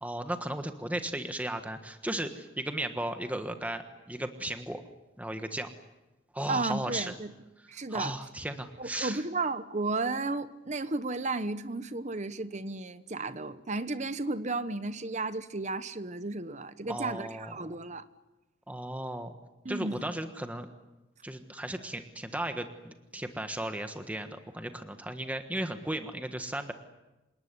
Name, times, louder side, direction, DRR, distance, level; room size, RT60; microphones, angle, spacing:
voice 1, 0.0-4.8 5.2-5.7 6.3-7.1 7.9-9.2 16.9-17.7 18.7-19.3 19.7-20.7 21.2-26.7, right 1 dB, 10° right, 1.4 m, -35 dB
voice 2, 6.5-7.3 7.7-8.1 8.8-18.0 19.6-20.0, right 3 dB, 35° right, 1.1 m, -33 dB
28.0 x 19.0 x 9.8 m
head